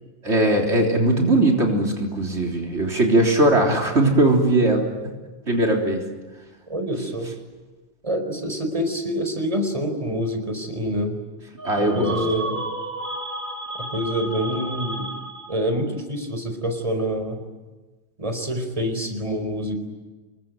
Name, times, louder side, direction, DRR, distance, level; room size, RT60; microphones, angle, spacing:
voice 1, 0.2-4.9 5.5-6.0 11.6-12.2, right 1 dB, 90° right, 0 dB, 4.0 m, -19 dB
voice 2, 6.7-7.3 8.0-11.2 11.8-12.6 13.9-15.1 15.5-17.4 18.2-19.8, equal, 30° right, 6 dB, 4.4 m, -26 dB
sound 1, 11.6-15.7, right 1 dB, 55° right, 4.5 m, -32 dB
28.0 x 22.0 x 9.3 m, 1.2 s
omnidirectional pair, 1.1 m